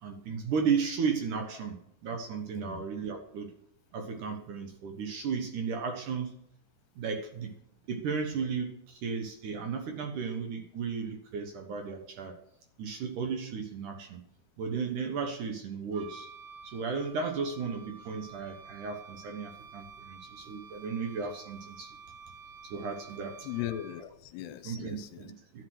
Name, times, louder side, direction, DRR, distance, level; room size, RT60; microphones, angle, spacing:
voice 1, 0.0-3.5 3.9-6.3 7.0-7.5 7.9-12.3 12.8-14.2 14.6-16.3 16.6-22.0 22.6-23.5 24.6-25.6, right 5 dB, 65° right, 5 dB, 2.3 m, -34 dB
voice 2, 2.5-2.8 23.4-25.3, left 13 dB, 85° left, 12 dB, 2.9 m, -38 dB
Wind instrument woodwind instrument, 15.9-24.2, right 5 dB, 80° right, 3.3 m, -50 dB
12.5 x 10.5 x 6.4 m, 0.70 s
omnidirectional pair, 4.8 m